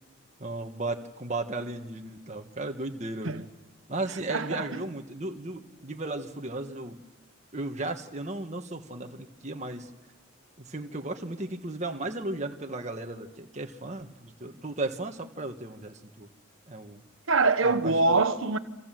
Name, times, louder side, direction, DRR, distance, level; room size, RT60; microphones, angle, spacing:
voice 1, 0.4-3.4 3.9-7.0 7.5-9.9 10.6-16.3 16.7-17.0 17.6-18.2, right 2 dB, 30° right, 1.6 m, -35 dB
voice 2, 4.3-4.6 17.3-18.6, right 3 dB, 65° right, 1.3 m, -24 dB
29.5 x 25.5 x 7.7 m
head